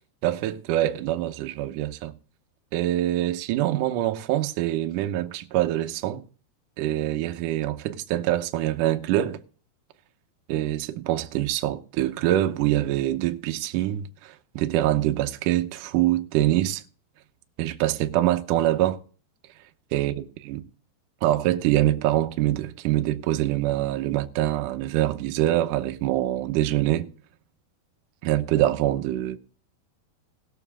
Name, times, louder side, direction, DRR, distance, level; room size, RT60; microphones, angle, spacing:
voice 1, 0.2-2.1 2.7-6.2 6.8-9.4 10.5-16.8 17.6-19.0 19.9-20.6 21.2-27.1 28.2-29.4, right 14 dB, 80° right, 1.9 m, -24 dB
19.5 x 7.1 x 3.5 m
omnidirectional pair, 4.9 m